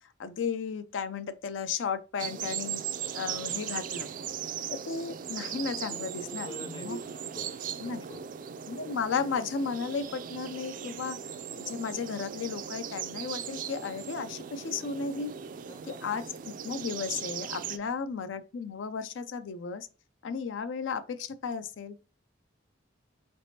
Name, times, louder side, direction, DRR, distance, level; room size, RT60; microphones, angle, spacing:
voice 1, 0.2-2.8 3.1-4.1 4.7-7.0 7.8-8.0 8.7-11.2 11.5-15.4 15.9-19.9 20.2-22.0, left 5 dB, 80° left, 0.4 m, -34 dB
sound 1, 2.2-17.8, right 8 dB, 45° right, 0.3 m, -38 dB
voice 2, 3.6-4.5 5.9-8.4 15.7-16.2 17.8-17.9 20.3-20.4, equal, 25° left, 0.5 m, -50 dB
4.0 x 3.3 x 2.7 m
head